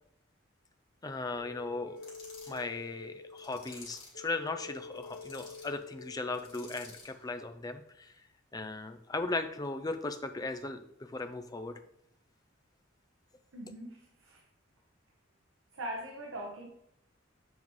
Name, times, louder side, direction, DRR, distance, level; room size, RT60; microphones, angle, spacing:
voice 1, 1.0-2.0 2.5-8.1 8.5-11.8, left 3 dB, 20° left, 8 dB, 0.5 m, -37 dB
sound 1, 1.4-6.9, left 4 dB, 90° left, 1.7 m, -48 dB
sound 2, 2.0-2.6 3.4-4.2 4.9-5.7 6.3-7.2, left 4 dB, 45° left, 2.8 m, -52 dB
voice 2, 13.5-14.4 15.7-16.7, right 1 dB, 80° right, 0 dB, 1.0 m, -41 dB
7.3 x 5.5 x 3.1 m, 0.75 s
head